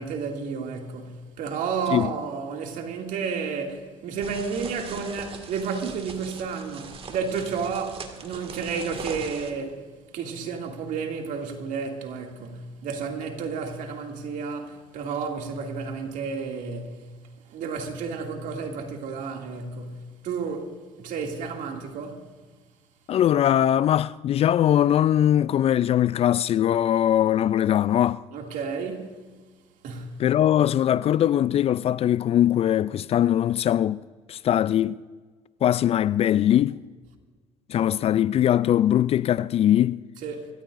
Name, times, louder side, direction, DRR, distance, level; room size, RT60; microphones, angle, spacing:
voice 1, 0.0-9.8 10.1-17.0 17.5-22.2 28.3-29.2 29.8-30.2 40.2-40.5, right 5 dB, 60° right, 2.5 m, -31 dB
sound 1, 4.2-9.5, right 5 dB, 40° right, 2.0 m, -41 dB
voice 2, 23.1-28.2 30.2-34.0 34.3-35.0 35.6-36.8 37.7-40.0, left 11 dB, 40° left, 0.4 m, -21 dB
25.5 x 14.0 x 2.6 m
hypercardioid pair, 75°, 15 cm